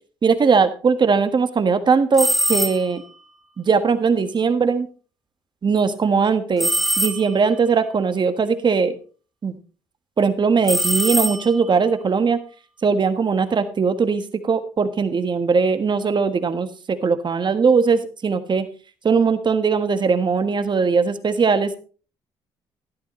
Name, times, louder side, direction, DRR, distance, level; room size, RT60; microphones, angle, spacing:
voice 1, 0.2-3.0 3.6-4.9 5.6-6.7 7.0-9.0 9.4-9.6 10.2-12.4 12.8-18.7 19.0-21.8, right 5 dB, 40° right, 10 dB, 1.4 m, -20 dB
sound 1, 2.1-3.1 6.6-7.6 10.6-11.8, equal, ahead, 2.4 m, -23 dB
13.0 x 11.0 x 3.1 m, 0.37 s
supercardioid pair, 60°, 11 cm